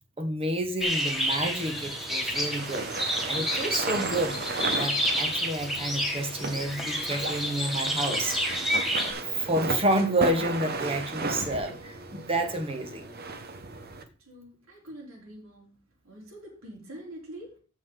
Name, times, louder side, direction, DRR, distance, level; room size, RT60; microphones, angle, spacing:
voice 1, 0.2-4.4 4.7-8.4 9.0-13.1, right 1 dB, 30° right, 1.5 m, -29 dB
sound 1, 0.8-9.1, equal, ahead, 2.1 m, -30 dB
sound 2, 1.3-14.0, right 3 dB, 50° right, 1.1 m, -35 dB
voice 2, 14.2-15.8 16.0-17.6, right 1 dB, 80° right, 3.9 m, -45 dB
14.0 x 5.6 x 3.9 m
head